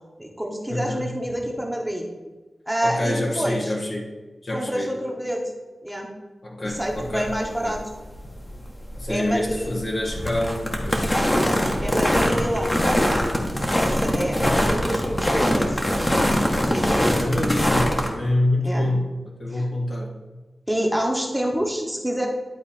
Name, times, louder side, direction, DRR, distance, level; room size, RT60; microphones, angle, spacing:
voice 1, 0.2-2.1 2.7-3.7 4.5-5.4 5.8-6.1 6.6-7.8 9.1-9.8 11.3-12.7 14.0-15.8 16.7-16.9 18.6-18.9 19.5-19.7 20.7-22.3, equal, 5° right, 0 dB, 1.3 m, -27 dB
voice 2, 0.7-1.1 2.8-4.0 4.4-4.9 6.4-7.3 7.6-7.8 9.0-11.7 14.3-14.6 17.0-19.1 19.4-20.1, left 1 dB, 45° left, -1 dB, 1.2 m, -27 dB
sound 1, 6.7-18.1, equal, 20° left, 1.3 m, -23 dB
10.5 x 4.1 x 4.3 m, 1.2 s
wide cardioid pair, 75°, 0 cm